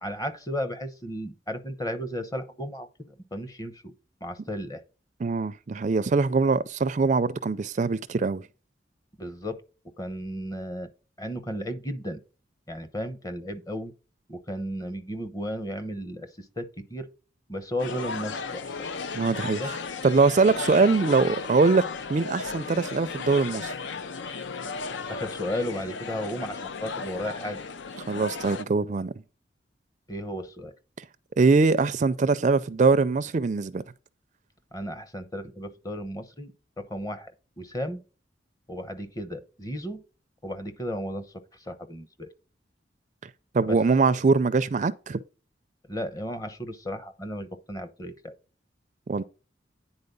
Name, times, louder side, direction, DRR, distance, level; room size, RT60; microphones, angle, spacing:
voice 1, 0.0-2.9 3.3-3.9 4.2-4.8 9.2-9.6 10.0-10.9 11.2-12.2 12.7-13.9 14.3-16.3 16.6-17.1 17.5-18.6 19.6-19.7 25.1-27.6 30.1-30.7 34.7-36.5 36.8-37.3 37.6-38.0 38.7-40.0 40.4-41.2 41.6-42.3 43.7-43.8 45.9-48.3, equal, 20° left, 0.9 m, -34 dB
voice 2, 5.2-8.5 19.1-19.8 20.0-21.8 22.1-23.7 28.1-29.1 31.4-33.8 43.5-45.2 49.1-49.2, right 4 dB, 40° right, 0.4 m, -22 dB
sound 1, 17.8-28.6, left 4 dB, 85° left, 0.6 m, -35 dB
9.7 x 4.2 x 5.3 m
head